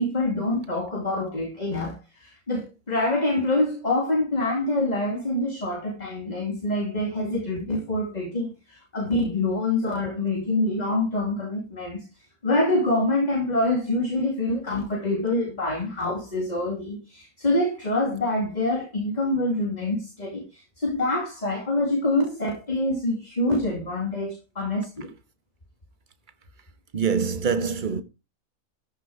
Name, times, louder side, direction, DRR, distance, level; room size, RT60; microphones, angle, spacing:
voice 1, 0.0-12.0 12.4-25.1, left 2 dB, 30° left, 2.7 m, -26 dB
voice 2, 26.9-28.0, right 6 dB, 40° right, 1.2 m, -24 dB
14.0 x 6.3 x 4.7 m
omnidirectional pair, 1.5 m